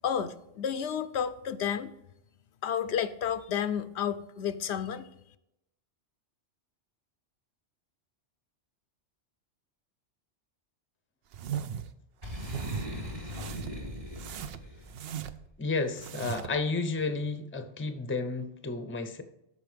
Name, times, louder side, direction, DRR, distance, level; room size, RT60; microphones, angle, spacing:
voice 1, 0.0-1.9 2.6-5.1, left 8 dB, 75° left, 13 dB, 0.8 m, -31 dB
sound 1, 11.3-11.9 12.3-12.9 13.3-13.8 14.2-15.5 15.9-16.6, right 9 dB, 65° right, 0.7 m, -38 dB
Boom, 12.2-14.9, left 1 dB, 45° right, 2.8 m, -39 dB
voice 2, 15.6-19.2, left 3 dB, 15° left, 9 dB, 0.6 m, -32 dB
13.5 x 4.7 x 3.4 m, 0.83 s
omnidirectional pair, 1.2 m